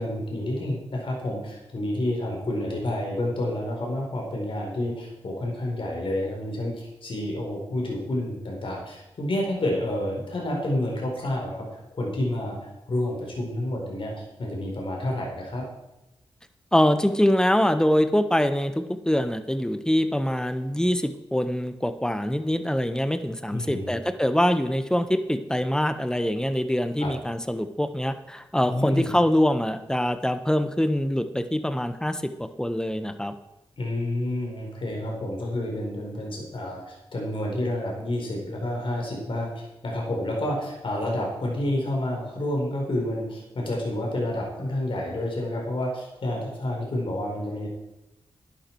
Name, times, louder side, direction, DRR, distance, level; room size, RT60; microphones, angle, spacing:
voice 1, 0.0-11.7 11.9-12.6 12.9-15.6 23.5-23.9 27.0-27.1 28.7-29.1 33.8-47.7, left 1 dB, 60° left, -1 dB, 4.3 m, -29 dB
voice 2, 16.7-32.3 32.6-33.3, equal, 5° left, 10 dB, 1.2 m, -24 dB
12.0 x 11.0 x 4.7 m, 0.97 s
cardioid pair, 50°, 10 cm